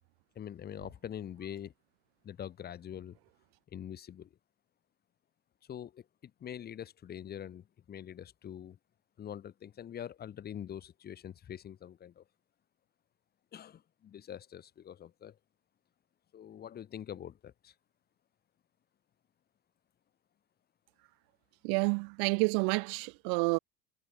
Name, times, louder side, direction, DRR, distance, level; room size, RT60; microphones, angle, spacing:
voice 1, 0.4-1.7 2.2-3.2 3.7-4.3 5.7-8.8 9.2-12.2 13.5-15.4 16.3-17.7, left 9 dB, 30° left, 2.2 m, -44 dB
voice 2, 21.6-23.6, right 40 dB or more, 50° right, 0.5 m, -29 dB
figure-of-eight pair, 80°, 30 cm